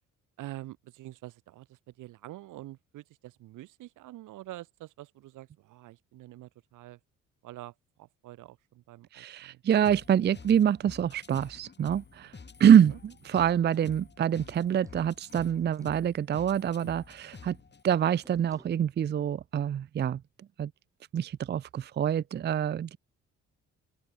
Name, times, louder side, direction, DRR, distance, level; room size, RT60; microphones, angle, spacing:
voice 1, 0.4-7.0 7.4-7.7 8.0-9.6 12.9-13.0, right 16 dB, 90° right, 3.2 m, -46 dB
voice 2, 9.1-12.3 12.6-17.6 17.8-20.2 20.6-20.7 21.1-23.0, right 9 dB, 35° right, 0.5 m, -25 dB
sound 1, 9.8-17.8, left 5 dB, 35° left, 5.2 m, -49 dB
sound 2, 14.4-16.1 18.2-18.8, right 1 dB, 10° right, 7.1 m, -59 dB
open air
cardioid pair, 90°, 30 cm